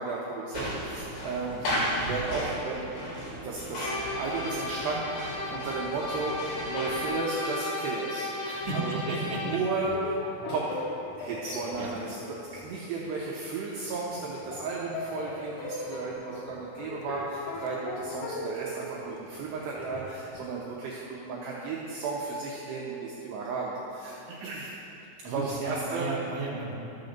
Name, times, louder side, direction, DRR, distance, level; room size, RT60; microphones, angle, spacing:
voice 1, 0.0-2.9 3.2-9.0 9.3-10.1 10.5-10.8 11.1-24.7 25.2-26.1, right 3 dB, 80° right, -4 dB, 2.5 m, -34 dB
sound 1, 0.5-7.1, equal, 60° left, 3.3 m, -35 dB
sound 2, 3.8-9.7, left 2 dB, 45° left, 3.6 m, -35 dB
voice 2, 8.4-9.4 11.8-11.9 25.2-26.7, right 3 dB, 60° right, -5 dB, 1.5 m, -34 dB
sound 3, 8.6-13.0 13.3-13.4 13.8-20.4, left 3 dB, 80° left, 3.6 m, -39 dB
12.0 x 6.9 x 6.5 m, 2.9 s
omnidirectional pair, 5.9 m